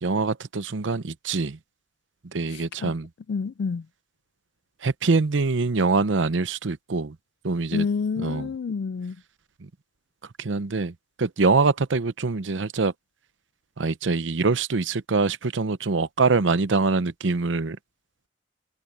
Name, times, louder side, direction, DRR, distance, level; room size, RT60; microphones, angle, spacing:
voice 1, 0.0-1.6 2.3-3.1 4.8-7.2 7.4-7.8 8.2-8.5 9.6-9.7 10.4-12.9 13.8-17.8, right 4 dB, 85° right, 0.7 m, -24 dB
voice 2, 3.3-3.8 7.7-9.2, left 5 dB, 65° left, 0.3 m, -28 dB
head